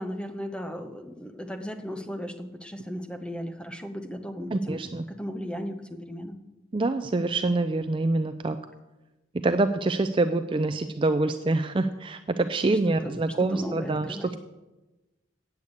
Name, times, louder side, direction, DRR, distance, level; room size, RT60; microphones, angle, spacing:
voice 1, 0.0-6.4 12.7-14.4, equal, 5° left, 6 dB, 0.8 m, -36 dB
voice 2, 4.5-5.0 6.7-8.6 9.4-14.4, right 2 dB, 25° right, 9 dB, 0.4 m, -26 dB
8.2 x 8.0 x 8.6 m, 1.1 s
head